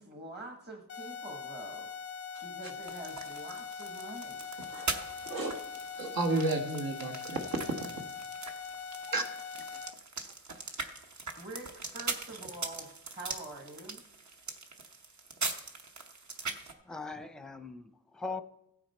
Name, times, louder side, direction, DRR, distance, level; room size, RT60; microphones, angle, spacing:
voice 1, 0.0-1.9 2.4-4.4 11.4-14.0, right 2 dB, 30° right, 2 dB, 1.4 m, -46 dB
sound 1, 0.9-9.9, left 6 dB, 40° left, 0.4 m, -42 dB
sound 2, 2.8-16.7, right 3 dB, 50° right, 1.2 m, -41 dB
voice 2, 4.6-7.6 9.1-9.4, right 2 dB, 75° right, 3 dB, 1.6 m, -33 dB
voice 3, 16.8-18.4, left 3 dB, ahead, 9 dB, 0.6 m, -40 dB
15.5 x 9.1 x 4.4 m, 0.85 s
wide cardioid pair, 105°, 36 cm